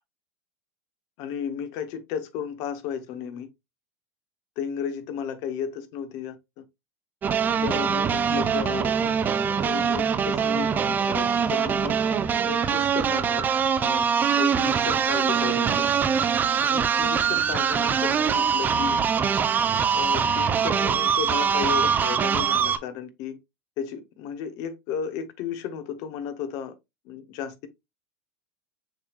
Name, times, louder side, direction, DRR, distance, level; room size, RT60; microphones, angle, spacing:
voice 1, 1.2-3.5 4.6-6.6 7.6-8.9 9.5-12.0 12.4-13.5 13.8-15.9 16.6-19.0 19.9-23.4 23.8-26.7 27.0-27.7, left 7 dB, 55° left, 1.1 m, -34 dB
sound 1, 7.2-22.8, right 7 dB, 25° right, 0.5 m, -23 dB
6.4 x 3.3 x 2.4 m
supercardioid pair, 115°, 7 cm